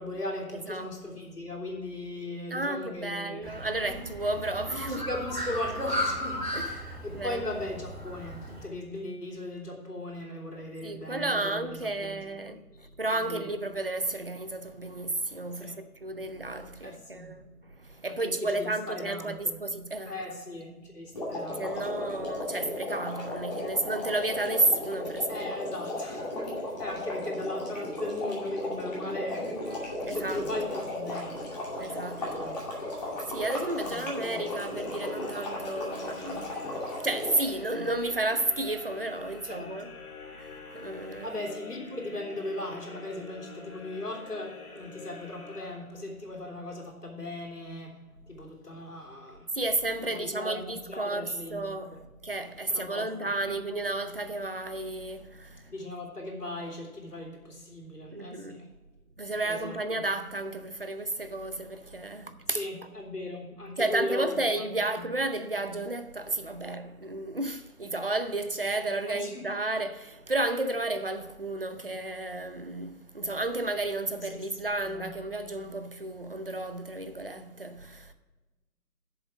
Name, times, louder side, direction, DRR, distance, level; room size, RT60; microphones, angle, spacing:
voice 1, 0.0-3.5 3.9-4.0 5.0-12.2 13.2-13.5 15.6-15.8 16.8-17.3 18.1-19.6 20.1-21.8 25.3-31.4 32.2-32.7 33.8-34.5 39.4-39.7 41.2-48.0 48.3-49.5 50.0-52.0 52.7-53.6 55.7-58.7 59.4-59.8 62.5-64.7 64.9-65.1 69.1-69.5 74.3-74.4 74.8-75.1, left 1 dB, 85° left, 3.3 m, -38 dB
voice 2, 0.5-0.9 2.5-5.1 6.5-7.5 10.8-20.2 21.5-25.6 29.7-30.8 31.7-32.5 33.2-39.9 40.3-41.4 49.5-55.7 58.1-58.6 59.2-62.7 63.8-78.1, right 2 dB, 40° right, 0.6 m, -32 dB
Bird, 3.4-8.6, equal, 5° right, 2.0 m, -35 dB
sound 1, 21.1-37.6, left 1 dB, 25° left, 2.4 m, -36 dB
sound 2, 34.1-46.3, left 4 dB, 65° left, 2.1 m, -47 dB
8.1 x 7.1 x 6.1 m
figure-of-eight pair, 165°, 46 cm